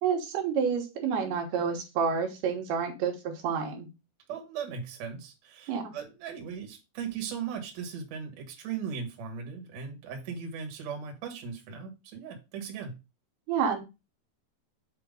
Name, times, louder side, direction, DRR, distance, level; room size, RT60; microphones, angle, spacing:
voice 1, 0.0-3.9 5.7-5.9 13.5-13.8, right 6 dB, 80° right, 3.1 m, -29 dB
voice 2, 4.3-13.0, right 6 dB, 55° right, 2.2 m, -38 dB
7.8 x 2.9 x 5.2 m
omnidirectional pair, 4.7 m